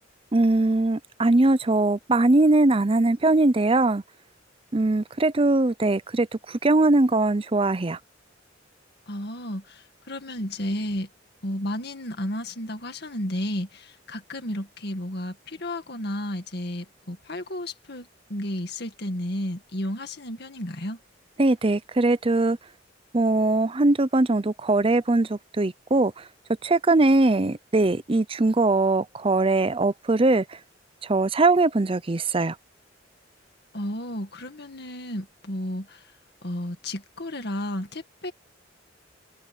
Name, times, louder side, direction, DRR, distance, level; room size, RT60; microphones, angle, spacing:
voice 1, 0.3-4.0 4.7-6.3 6.6-8.0 21.4-22.6 23.1-26.1 26.6-30.4 31.1-32.5, right 2 dB, 30° right, 0.6 m, -21 dB
voice 2, 9.1-11.1 11.4-21.0 33.7-36.0 36.4-38.3, left 1 dB, 60° left, 2.1 m, -32 dB
head